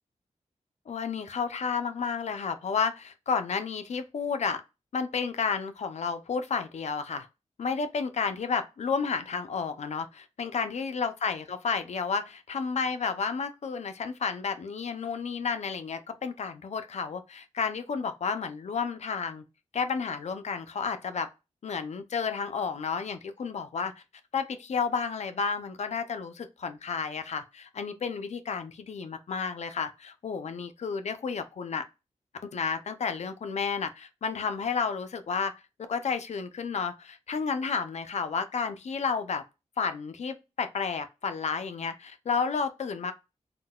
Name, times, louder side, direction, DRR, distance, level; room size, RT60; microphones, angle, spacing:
voice 1, 0.9-4.6 4.9-7.3 7.6-19.4 19.7-21.3 21.6-24.0 24.3-31.8 32.5-35.5 35.8-39.4 39.8-43.1, left 5 dB, 65° left, 0.5 m, -31 dB
3.7 x 2.2 x 2.3 m
cardioid pair, 75°, 13 cm